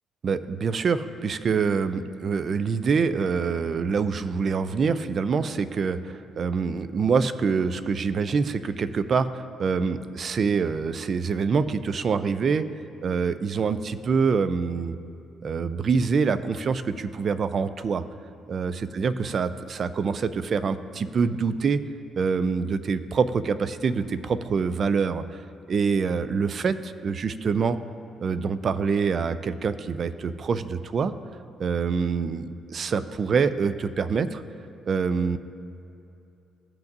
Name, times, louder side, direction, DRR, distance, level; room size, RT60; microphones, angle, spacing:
voice 1, 0.2-12.7 13.0-15.0 15.4-18.0 18.5-21.8 22.2-25.4 25.7-27.8 28.2-31.1 31.6-34.4 34.9-35.4, right 5 dB, 50° right, 13 dB, 0.4 m, -25 dB
16.5 x 6.0 x 2.6 m, 2.7 s
cardioid pair, 90°, 0 cm